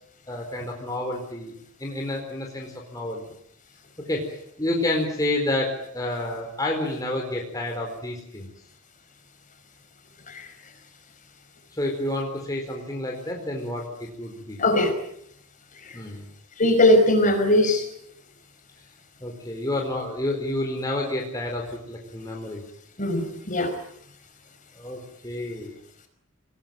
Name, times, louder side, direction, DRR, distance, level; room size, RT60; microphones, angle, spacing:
voice 1, 0.3-1.5 1.8-3.2 4.1-8.5 11.8-14.6 15.9-16.2 19.2-22.6 24.7-25.8, left 1 dB, 15° left, 0 dB, 4.4 m, -29 dB
voice 2, 14.6-14.9 15.8-15.9 16.6-17.9 23.0-23.7, left 1 dB, 35° left, 6 dB, 5.3 m, -20 dB
26.5 x 19.5 x 9.3 m, 0.72 s
head